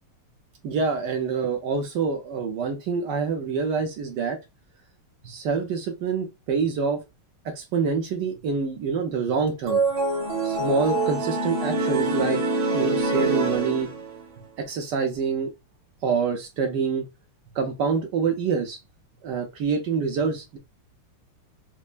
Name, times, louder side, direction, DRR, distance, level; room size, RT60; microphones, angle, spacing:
voice 1, 0.6-4.4 5.2-7.0 7.4-9.8 10.4-12.4 12.7-13.9 14.6-15.5 16.0-17.0 17.5-18.8 19.2-20.6, right 5 dB, 65° right, 1.1 m, -26 dB
sound 1, 9.7-14.3, right 2 dB, 85° right, 2.7 m, -25 dB
5.4 x 2.1 x 2.4 m
omnidirectional pair, 2.3 m